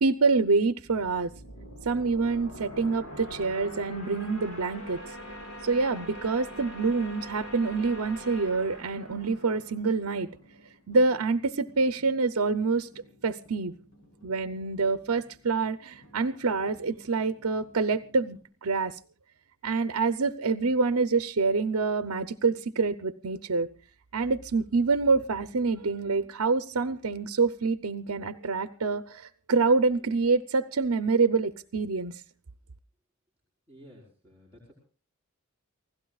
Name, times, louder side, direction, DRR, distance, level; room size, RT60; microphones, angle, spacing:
voice 1, 0.0-1.3 1.8-5.2 5.6-10.3 10.9-12.9 13.2-13.8 14.2-19.0 19.6-23.7 24.1-32.2, right 4 dB, 75° right, 11 dB, 0.7 m, -26 dB
sound 1, 0.8-10.4, equal, 85° left, 5.6 m, -43 dB
sound 2, 10.1-18.4, equal, 60° left, 3.9 m, -58 dB
voice 2, 33.7-34.7, equal, 10° left, -5 dB, 4.4 m, -53 dB
29.5 x 16.0 x 2.4 m, 0.38 s
head